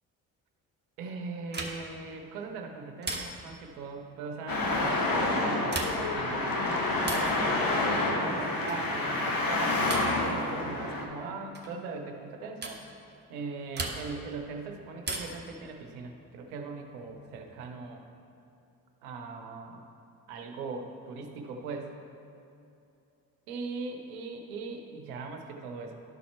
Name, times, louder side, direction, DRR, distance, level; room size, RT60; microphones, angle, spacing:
voice 1, 1.0-12.8 13.3-18.0 19.0-19.8 20.3-21.9 23.5-25.9, right 4 dB, 90° right, 3 dB, 0.8 m, -40 dB
sound 1, 1.5-2.0 3.0-3.6 5.6-6.2 7.0-7.4 8.7-9.0 9.9-10.2 11.5-11.8 12.6-12.8 13.7-14.3 15.0-15.5 17.0-17.7, right 3 dB, 25° right, 1.2 m, -37 dB
Traffic noise roadway noise, 4.5-11.0, left 2 dB, 50° left, 1.3 m, -28 dB
12.5 x 4.2 x 4.3 m, 2.6 s
hypercardioid pair, 45°, 43 cm